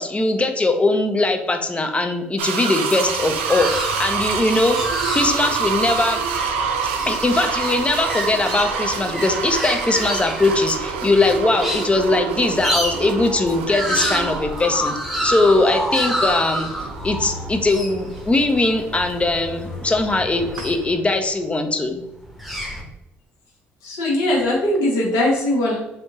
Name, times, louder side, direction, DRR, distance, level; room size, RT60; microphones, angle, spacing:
voice 1, 0.0-4.8 5.1-6.2 7.1-14.9 15.2-16.7 17.0-22.0, left 2 dB, 20° left, 5 dB, 0.6 m, -20 dB
sound 1, 2.4-20.2 20.6-20.7, right 6 dB, 80° right, 0.4 m, -27 dB
sound 2, 3.1-21.2 22.1-22.8, equal, ahead, 0.9 m, -29 dB
voice 2, 23.8-25.8, left 1 dB, 70° left, -4 dB, 1.3 m, -20 dB
3.4 x 2.5 x 2.8 m, 0.88 s
hypercardioid pair, 50°, 6 cm